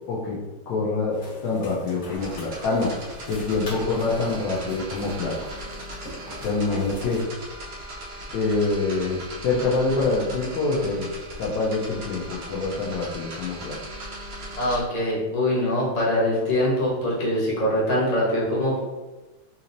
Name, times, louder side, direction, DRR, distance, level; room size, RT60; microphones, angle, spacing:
voice 1, 0.7-2.9 3.2-5.3 6.4-7.2 8.3-9.2 9.4-13.8, left 3 dB, 80° left, -6 dB, 1.4 m, -25 dB
sound 1, 1.1-7.2, equal, 50° left, 1.7 m, -42 dB
sound 2, 2.1-14.8, right 1 dB, 80° right, 0.5 m, -38 dB
voice 2, 14.6-18.8, left 1 dB, 30° left, -7 dB, 0.7 m, -23 dB
4.0 x 2.9 x 2.6 m, 1.2 s
omnidirectional pair, 2.0 m